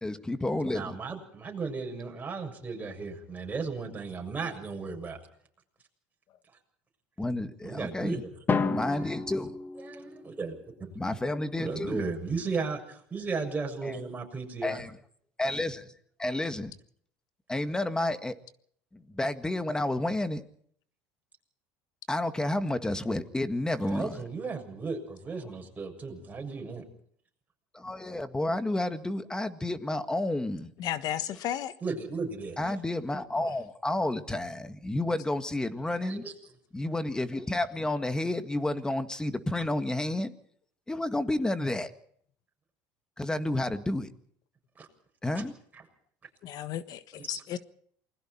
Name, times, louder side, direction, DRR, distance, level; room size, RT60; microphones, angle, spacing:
voice 1, 0.0-0.9 7.2-8.2 8.7-9.5 11.0-12.0 13.8-14.0 14.6-14.9 15.4-15.9 16.2-16.7 17.5-18.3 18.9-20.4 22.1-24.2 27.7-30.7 32.6-36.2 36.7-40.3 40.9-41.9 43.2-44.1 45.2-45.5, left 1 dB, 10° left, 1.8 m, -30 dB
voice 2, 0.7-5.2 7.6-8.2 8.8-9.2 9.8-10.6 11.6-14.8 23.8-26.8 31.8-32.6 36.0-36.3 44.8-44.9 45.3-45.4 45.7-45.8, right 4 dB, 20° right, 7.0 m, -35 dB
Drum, 8.5-10.5, left 4 dB, 25° left, 1.5 m, -31 dB
voice 3, 30.8-31.7 46.5-46.8 47.3-47.6, left 11 dB, 55° left, 1.4 m, -32 dB
28.5 x 21.0 x 4.5 m
cardioid pair, 125°, 8 cm